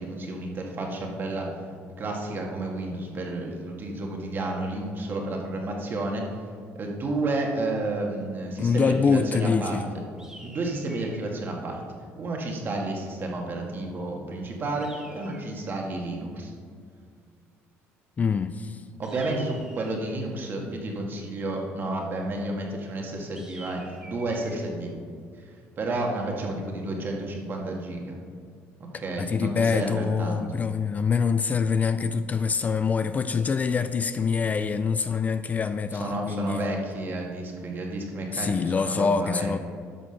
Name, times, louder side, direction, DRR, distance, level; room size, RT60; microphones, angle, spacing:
voice 1, 0.0-1.5 2.0-6.3 6.7-10.0 10.4-11.8 12.2-16.5 19.0-24.9 25.4-25.5 25.8-28.2 29.0-30.5 36.0-39.5, right 2 dB, 40° right, 1 dB, 1.9 m, -31 dB
voice 2, 8.6-9.9 18.2-18.8 29.2-36.7 38.3-39.6, left 5 dB, 30° left, 11 dB, 0.4 m, -25 dB
sound 1, 10.2-11.3 14.8-15.8 19.0-20.3 23.3-24.6, right 1 dB, 10° right, 1.4 m, -48 dB
11.0 x 6.0 x 5.8 m, 2.1 s
cardioid pair, 110°, 5 cm